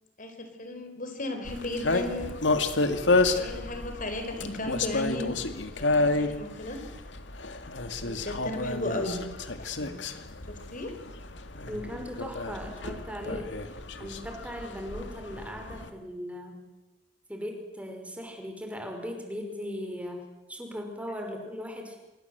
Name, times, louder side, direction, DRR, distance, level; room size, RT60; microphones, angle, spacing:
voice 1, 0.2-2.3 3.3-5.4 5.8-6.8 8.0-9.2 9.6-9.9 10.5-10.9, left 1 dB, 45° left, 6 dB, 4.6 m, -35 dB
sound 1, 1.5-15.9, left 3 dB, 80° left, 2.1 m, -30 dB
voice 2, 11.7-13.7 14.0-16.7 17.3-22.0, equal, 10° right, 3 dB, 5.2 m, -38 dB
26.5 x 23.0 x 8.0 m, 1.1 s
head